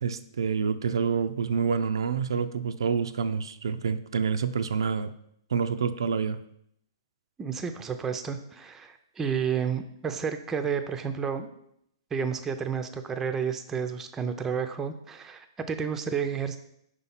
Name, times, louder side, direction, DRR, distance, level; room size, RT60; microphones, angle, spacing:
voice 1, 0.0-5.1 5.5-6.4, right 6 dB, 85° right, 10 dB, 0.4 m, -27 dB
voice 2, 7.4-11.5 12.1-16.6, right 6 dB, 15° right, 7 dB, 0.5 m, -31 dB
5.1 x 4.1 x 5.6 m, 0.74 s
hypercardioid pair, 140°, 2 cm